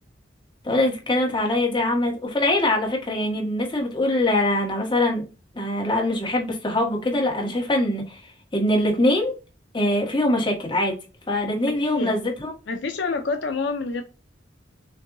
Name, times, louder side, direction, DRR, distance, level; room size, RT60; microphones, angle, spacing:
voice 1, 0.6-5.2 5.5-8.2 8.5-9.3 9.7-11.0 11.3-12.5, left 1 dB, 25° left, 1.6 m, -23 dB
voice 2, 11.7-12.2 12.7-14.0, left 4 dB, 70° left, 0.6 m, -27 dB
6.6 x 2.7 x 2.6 m
head